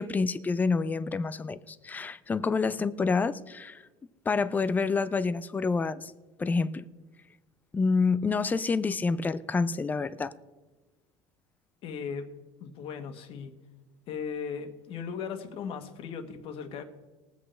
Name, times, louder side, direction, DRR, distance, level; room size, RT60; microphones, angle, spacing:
voice 1, 0.0-3.8 4.3-6.1 6.4-6.8 7.7-10.3, left 4 dB, 15° left, 0.4 m, -28 dB
voice 2, 11.8-12.3 12.6-13.5 14.1-16.8, left 6 dB, 45° left, 1.4 m, -37 dB
21.5 x 8.0 x 3.3 m
cardioid pair, 145°, 13 cm